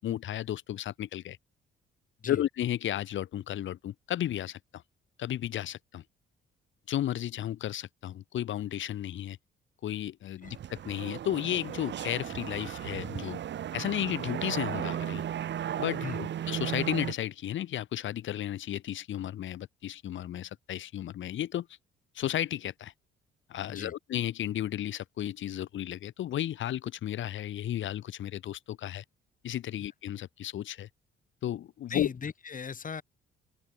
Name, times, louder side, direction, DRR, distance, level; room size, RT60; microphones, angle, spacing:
voice 1, 0.0-1.4 2.3-4.8 5.2-6.0 6.9-9.4 9.8-13.4 13.7-15.2 15.8-21.7 22.1-22.9 23.5-29.0 29.4-30.9 31.4-32.1, left 12 dB, 75° left, 5.6 m, -33 dB
sound 1, 10.4-17.1, right 10 dB, 65° right, 2.5 m, -35 dB
voice 2, 31.9-33.0, left 6 dB, 40° left, 7.6 m, -37 dB
cardioid pair, 90°, 20 cm